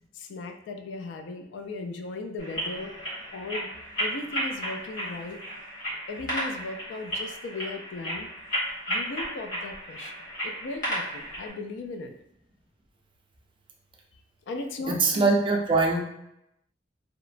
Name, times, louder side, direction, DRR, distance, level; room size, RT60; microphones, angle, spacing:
voice 1, 0.1-3.7 4.0-5.4 6.1-8.3 8.9-10.2 10.4-12.1 14.5-15.3, left 3 dB, 70° left, 5 dB, 0.3 m, -37 dB
sound 1, 2.4-11.5, equal, 45° left, 1.4 m, -34 dB
voice 2, 14.9-16.0, right 3 dB, 30° right, 0 dB, 0.4 m, -22 dB
2.9 x 2.1 x 2.4 m, 0.80 s
head